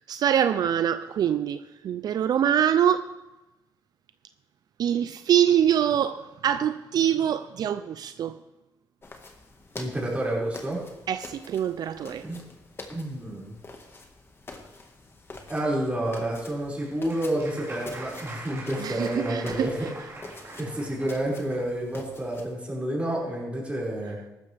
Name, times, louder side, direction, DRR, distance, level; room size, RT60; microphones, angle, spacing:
voice 1, 0.0-3.2 4.8-8.4 11.1-12.3 18.8-19.9, right 9 dB, 65° right, 0.4 m, -24 dB
sound 1, 9.0-22.5, left 3 dB, 35° left, 1.7 m, -46 dB
voice 2, 9.7-10.8 12.2-12.4 12.9-13.6 15.5-19.9 20.6-24.2, right 1 dB, 15° right, 5.6 m, -29 dB
Applause, 16.4-21.2, right 2 dB, 35° right, 4.0 m, -43 dB
15.0 x 12.5 x 3.4 m
cardioid pair, 80°, 7 cm